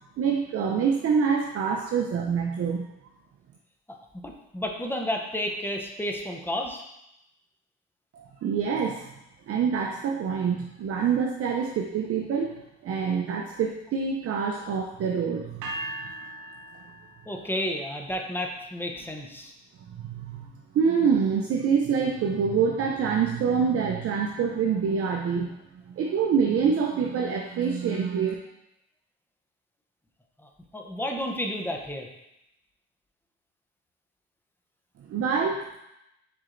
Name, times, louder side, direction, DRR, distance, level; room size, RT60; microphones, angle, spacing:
voice 1, 0.2-2.9 8.1-9.1 9.5-15.7 19.9-20.5 20.7-25.6 26.0-28.3 35.1-35.6, right 6 dB, 50° right, 2 dB, 0.5 m, -26 dB
voice 2, 4.2-6.8 17.3-19.5 30.4-32.1, left 1 dB, 5° left, 2 dB, 0.6 m, -31 dB
sound 1, 15.6-17.7, right 1 dB, 80° right, 0.8 m, -38 dB
4.7 x 4.2 x 2.5 m, 0.86 s
cardioid pair, 90°, 30 cm